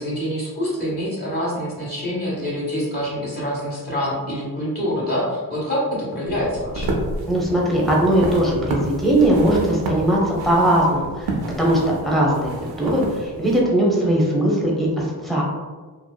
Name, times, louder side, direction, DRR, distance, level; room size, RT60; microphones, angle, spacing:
voice 1, 0.0-7.0, equal, 25° left, -6 dB, 1.3 m, -26 dB
sound 1, 6.3-13.6, right 2 dB, 70° right, 0.6 m, -30 dB
voice 2, 7.3-11.1 11.6-14.9 15.2-15.4, right 1 dB, ahead, -4 dB, 0.8 m, -19 dB
2.8 x 2.1 x 2.2 m, 1.4 s
cardioid pair, 55°, 39 cm